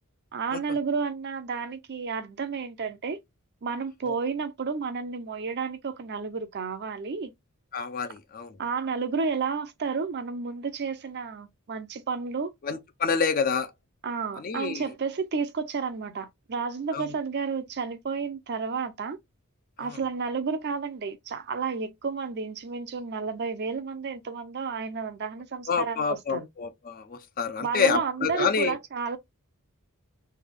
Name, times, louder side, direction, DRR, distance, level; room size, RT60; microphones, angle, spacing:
voice 1, 0.3-3.2 3.6-7.3 8.6-12.5 14.0-19.2 19.8-26.5 27.6-29.2, right 5 dB, 50° right, 0.5 m, -31 dB
voice 2, 7.7-8.6 12.6-13.7 14.4-14.8 16.9-17.1 19.8-20.0 25.7-28.8, left 5 dB, 40° left, 0.5 m, -28 dB
3.3 x 2.3 x 3.3 m
head